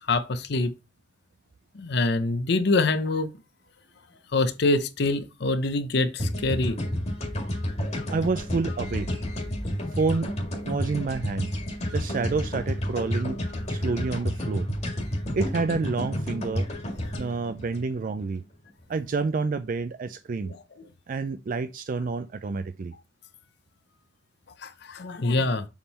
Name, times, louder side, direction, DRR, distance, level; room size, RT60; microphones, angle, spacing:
voice 1, 0.1-0.7 1.7-3.3 4.3-6.8 20.4-20.6 24.6-25.7, left 2 dB, 60° left, 0.7 m, -25 dB
sound 1, 6.2-18.4, equal, 35° left, 1.9 m, -30 dB
voice 2, 8.1-9.1 9.9-10.3 10.7-11.5 11.9-13.4 13.7-14.7 15.3-16.7 17.2-18.4 18.9-20.5 21.1-22.9, right 4 dB, 45° right, 0.4 m, -28 dB
7.1 x 3.7 x 4.1 m
head